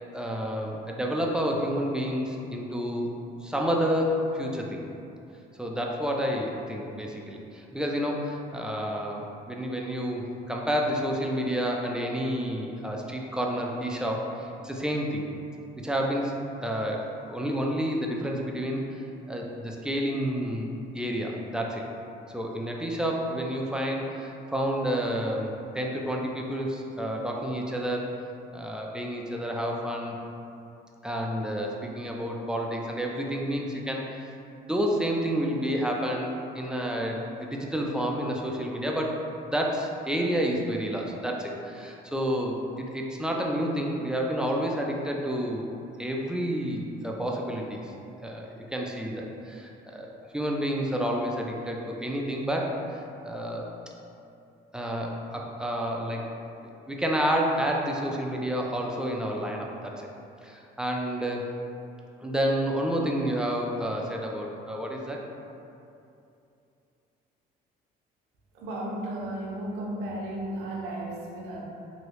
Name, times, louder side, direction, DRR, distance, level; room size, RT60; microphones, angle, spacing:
voice 1, 0.1-3.1 3.4-4.8 5.6-15.3 15.8-16.3 16.6-18.8 19.3-21.9 22.3-28.1 28.5-30.2 31.0-39.2 39.5-45.7 46.0-47.9 48.2-53.7 54.7-56.3 56.9-60.1 60.4-61.5 62.2-65.3, equal, 5° right, -1 dB, 0.3 m, -30 dB
voice 2, 68.5-71.7, right 1 dB, 85° right, -2 dB, 0.6 m, -34 dB
3.0 x 2.6 x 2.9 m, 2.7 s
cardioid pair, 110°, 17 cm